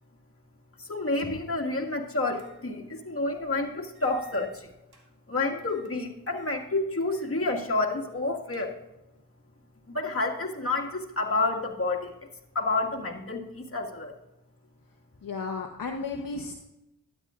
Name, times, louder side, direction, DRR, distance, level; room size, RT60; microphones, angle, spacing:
voice 1, 0.8-4.7 5.3-8.8 9.9-12.1 12.6-14.1, left 2 dB, 35° left, 1 dB, 1.9 m, -29 dB
sound 1, 1.1-1.7 2.4-2.6 3.0-3.1 3.9-5.1 5.6-5.9 6.3-6.6 7.0-7.3 7.6-7.7 8.2-9.0, right 1 dB, 70° right, 1.8 m, -50 dB
voice 2, 15.2-16.5, left 4 dB, 55° left, 2 dB, 1.0 m, -33 dB
12.5 x 10.0 x 2.5 m, 0.95 s
cardioid pair, 50°, 39 cm